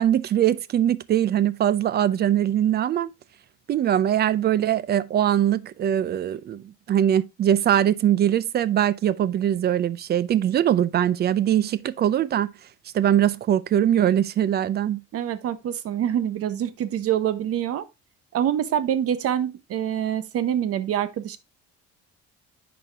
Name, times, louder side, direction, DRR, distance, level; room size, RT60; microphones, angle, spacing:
voice 1, 0.0-3.1 3.7-12.5 12.9-15.0, right 10 dB, 35° right, 0.4 m, -22 dB
voice 2, 15.1-17.9 18.3-21.4, right 10 dB, 50° right, 0.9 m, -25 dB
10.0 x 4.3 x 3.4 m
cardioid pair, 160°, 29 cm